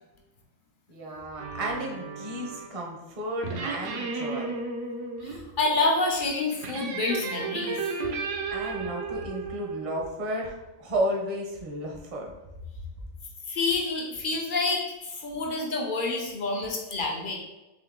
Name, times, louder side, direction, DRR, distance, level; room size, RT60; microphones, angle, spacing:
voice 1, 0.9-4.5 8.5-12.3, right 1 dB, 35° right, -1 dB, 0.6 m, -33 dB
sound 1, 1.4-2.8 3.4-5.4 6.6-10.1, right 4 dB, 70° right, 0.9 m, -33 dB
voice 2, 5.2-7.8 13.5-17.4, left 3 dB, 50° left, 1 dB, 0.6 m, -28 dB
3.7 x 3.1 x 3.6 m, 1.0 s
omnidirectional pair, 1.4 m